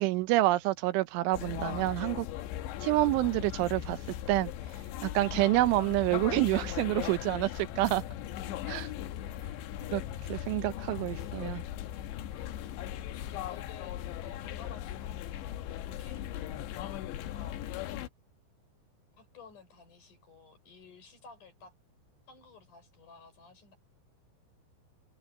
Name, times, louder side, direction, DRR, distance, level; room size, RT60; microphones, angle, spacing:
voice 1, 0.0-2.3 2.8-4.0 4.3-4.5 5.0-8.0 8.7-8.9 9.9-10.0 10.3-11.6, right 18 dB, 85° right, 3.3 m, -28 dB
sound 1, 1.3-18.1, left 12 dB, 75° left, 3.3 m, -38 dB
voice 2, 9.1-9.4 9.7-9.9 13.2-16.6 17.3-18.1 19.1-21.7 22.3-23.8, left 5 dB, 40° left, 7.4 m, -54 dB
omnidirectional pair, 5.4 m